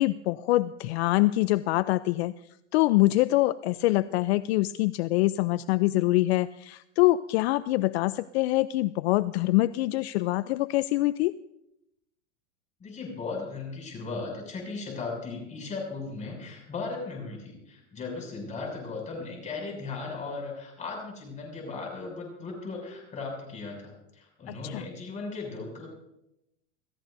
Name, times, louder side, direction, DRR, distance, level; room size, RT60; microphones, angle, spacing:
voice 1, 0.0-2.3 2.7-11.3 24.5-24.8, left 18 dB, 65° left, 15 dB, 0.5 m, -24 dB
voice 2, 12.8-25.9, left 4 dB, 20° left, 0 dB, 6.6 m, -37 dB
27.0 x 15.0 x 2.6 m, 0.87 s
supercardioid pair, 145°, 35 cm